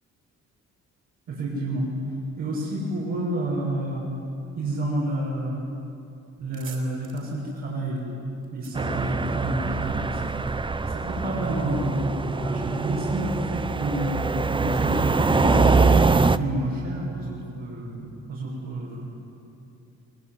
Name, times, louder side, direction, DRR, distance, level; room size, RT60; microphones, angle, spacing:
voice 1, 1.3-1.9 2.4-4.0 4.6-5.6 6.4-8.1 8.5-10.5 10.9-19.1, right 1 dB, 80° right, -7 dB, 7.4 m, -29 dB
sound 1, 6.5-9.8, right 5 dB, 50° right, 5.7 m, -49 dB
sound 2, 8.8-16.4, right 4 dB, 15° right, 0.7 m, -23 dB
24.0 x 21.5 x 9.9 m, 2.7 s
cardioid pair, 90°, 30 cm